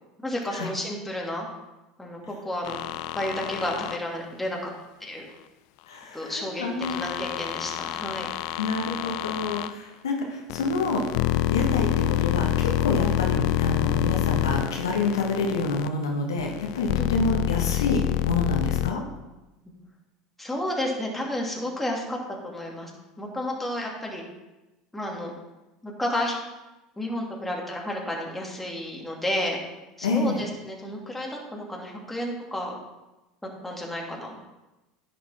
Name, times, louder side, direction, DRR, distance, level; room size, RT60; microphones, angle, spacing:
voice 1, 0.2-1.5 2.0-2.8 3.1-4.6 5.0-5.3 6.1-6.6 6.9-8.3 13.0-13.2 17.0-17.3 20.4-22.2 22.4-22.9 23.2-24.2 24.9-25.3 25.8-26.4 27.0-29.6 30.0-32.8 33.6-34.4, left 1 dB, 5° left, -2 dB, 2.5 m, -31 dB
sound 1, 2.6-4.0 6.8-9.7 10.5-15.9 16.4-18.9, left 12 dB, 70° left, 0.4 m, -27 dB
voice 2, 5.9-7.2 8.6-11.0 11.5-19.0 30.0-30.4, left 3 dB, 90° left, 1 dB, 1.4 m, -28 dB
10.0 x 6.8 x 4.3 m, 1.0 s
hypercardioid pair, 85°, 2 cm